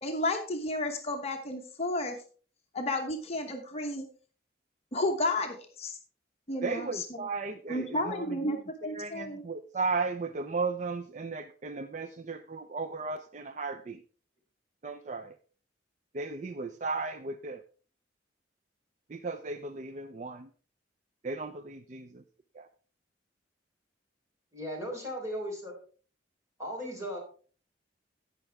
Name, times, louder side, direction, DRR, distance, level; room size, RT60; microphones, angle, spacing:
voice 1, 0.0-2.2 2.7-4.1 4.9-6.0 6.5-7.2 7.7-8.6 8.8-9.4, left 1 dB, 35° left, 3 dB, 1.1 m, -32 dB
voice 2, 6.6-14.0 14.8-15.4 16.1-17.6 19.1-20.5 21.2-22.2 22.5-22.7, right 4 dB, 40° right, 10 dB, 0.5 m, -35 dB
voice 3, 24.5-25.7 26.6-27.2, equal, 15° right, -1 dB, 3.9 m, -36 dB
16.0 x 5.8 x 3.4 m, 0.41 s
head